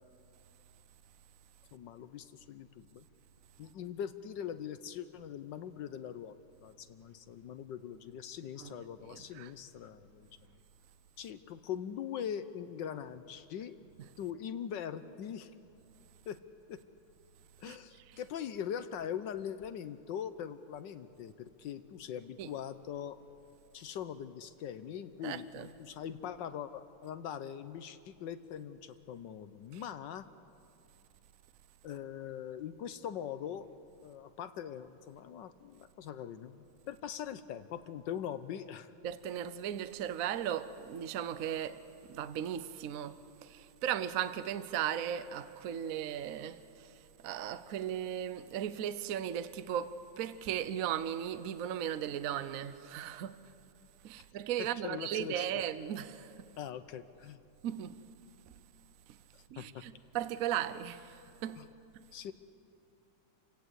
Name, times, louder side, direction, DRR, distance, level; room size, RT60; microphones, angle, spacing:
voice 1, 1.7-3.1 3.6-10.6 11.2-13.8 14.2-15.5 16.3-16.4 16.7-16.8 17.6-23.2 23.7-30.3 31.8-33.7 34.0-38.9 54.6-55.4 56.6-57.4 59.6-59.9 61.6-61.7 62.1-62.3, left 9 dB, 70° left, 1.2 m, -42 dB
voice 2, 9.0-9.5 17.6-17.8 18.1-18.2 22.4-22.5 25.2-25.7 29.7-29.8 39.0-53.5 54.0-56.5 57.6-58.0 58.5-58.6 59.1-59.2 59.5-61.6 61.9-62.1, right 10 dB, 75° right, 0.7 m, -37 dB
28.5 x 17.0 x 8.1 m
omnidirectional pair, 2.4 m